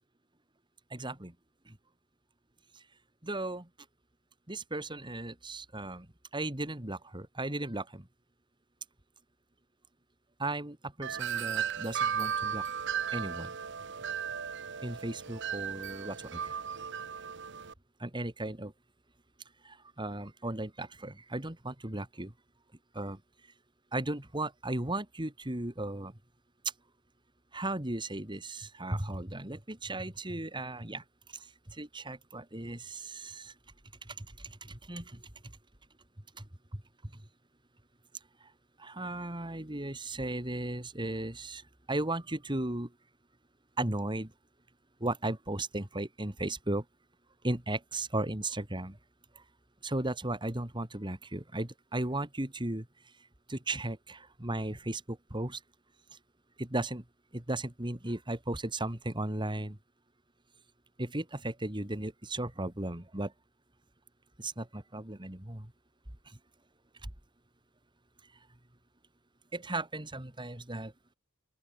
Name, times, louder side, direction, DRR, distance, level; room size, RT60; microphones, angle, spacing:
voice 1, 0.9-1.3 1.7-1.8 2.8-2.9 3.2-3.7 4.5-6.1 6.3-8.1 10.4-12.7 13.1-13.5 14.8-16.6 18.0-18.7 19.6-22.3 22.9-23.2 23.9-26.1 27.5-33.5 34.0-35.3 36.4-36.5 38.4-38.5 38.8-42.9 43.8-44.3 45.0-46.8 47.4-49.0 49.3-49.4 49.8-52.9 53.5-55.6 56.6-57.0 57.3-59.8 61.0-63.3 64.4-65.7 66.3-66.4 69.5-70.9, right 2 dB, 20° right, 2.3 m, -36 dB
Wind chime, 11.0-17.7, right 8 dB, 55° right, 1.3 m, -35 dB
open air
head